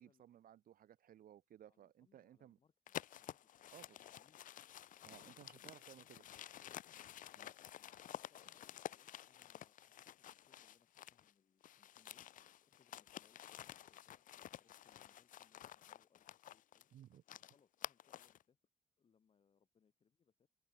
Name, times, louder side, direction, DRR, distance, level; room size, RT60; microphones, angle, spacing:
voice 1, 0.0-2.6 3.7-4.0 5.0-6.2 7.4-7.5 16.9-17.2, right 11 dB, 65° right, 1.7 m, -60 dB
voice 2, 1.7-4.5 5.0-6.4 8.0-18.6 19.0-20.5, left 6 dB, 35° left, 7.5 m, -77 dB
sound 1, 2.9-11.3 11.6-18.4, left 11 dB, 55° left, 0.6 m, -52 dB
open air
wide cardioid pair, 175°, 16 cm